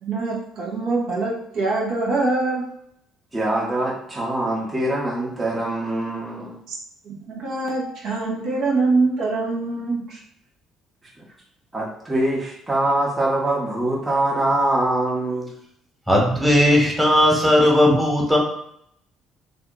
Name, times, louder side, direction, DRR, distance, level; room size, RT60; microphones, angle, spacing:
voice 1, 0.0-2.7 6.7-6.8 7.0-10.2, right 3 dB, 65° right, -4 dB, 0.9 m, -24 dB
voice 2, 3.3-6.6 11.7-15.5, right 1 dB, 20° right, -5 dB, 0.9 m, -23 dB
voice 3, 16.1-18.4, left 1 dB, ahead, -2 dB, 1.2 m, -17 dB
2.7 x 2.5 x 3.7 m, 0.71 s
hypercardioid pair, 55°, 0 cm